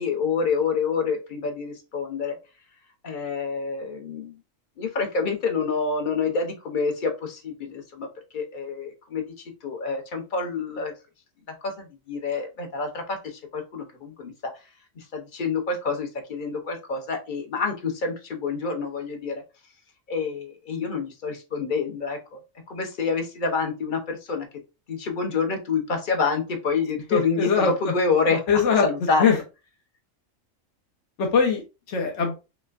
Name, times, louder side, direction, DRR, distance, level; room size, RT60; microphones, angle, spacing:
voice 1, 0.0-2.4 3.0-4.3 4.8-8.1 8.3-9.2 9.6-10.9 11.6-14.3 15.0-19.4 20.1-22.4 22.7-24.5 24.9-29.4, left 4 dB, 45° left, 4 dB, 0.9 m, -27 dB
voice 2, 27.1-27.7 28.5-28.8 29.2-29.4 31.2-31.6 31.9-32.3, left 6 dB, 65° left, 1 dB, 1.2 m, -21 dB
5.5 x 2.2 x 2.5 m, 0.28 s
omnidirectional pair, 1.4 m